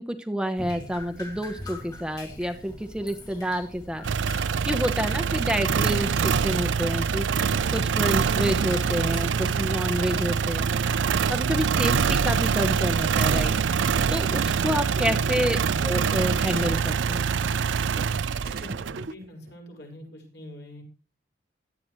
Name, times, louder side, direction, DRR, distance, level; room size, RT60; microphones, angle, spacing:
voice 1, 0.0-4.1 4.3-10.7 11.3-13.5 14.1-15.6 15.8-17.3, equal, 5° right, 7 dB, 0.9 m, -29 dB
Drip, 0.6-13.4, left 1 dB, 20° left, 2.4 m, -44 dB
sound 1, 4.0-19.1, right 6 dB, 85° right, 0.5 m, -24 dB
sound 2, 12.6-12.8 14.0-14.1 14.4-15.9 16.5-16.8 18.0-18.1 18.4-19.5, right 2 dB, 50° right, 0.8 m, -41 dB
voice 2, 18.5-20.8, left 1 dB, 65° left, 1 dB, 5.2 m, -44 dB
16.5 x 11.5 x 3.1 m, 0.37 s
head